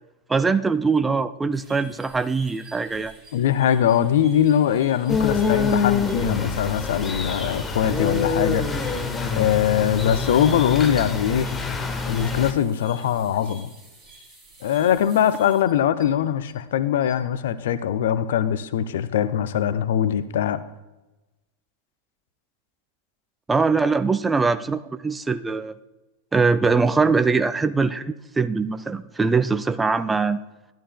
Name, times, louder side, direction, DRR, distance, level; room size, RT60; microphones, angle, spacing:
voice 1, 0.3-3.1 23.5-25.7 26.3-30.4, right 4 dB, 10° right, 11 dB, 0.4 m, -22 dB
sound 1, 1.5-16.5 16.9-17.3, right 2 dB, 30° right, 3.7 m, -50 dB
voice 2, 3.3-8.8 9.3-11.5 12.1-13.7 14.6-20.6, left 9 dB, 60° left, 13 dB, 0.5 m, -22 dB
sound 2, 5.1-12.5, left 5 dB, 15° left, 1.0 m, -25 dB
12.5 x 12.0 x 2.2 m, 1.0 s
figure-of-eight pair, 90°, 0 cm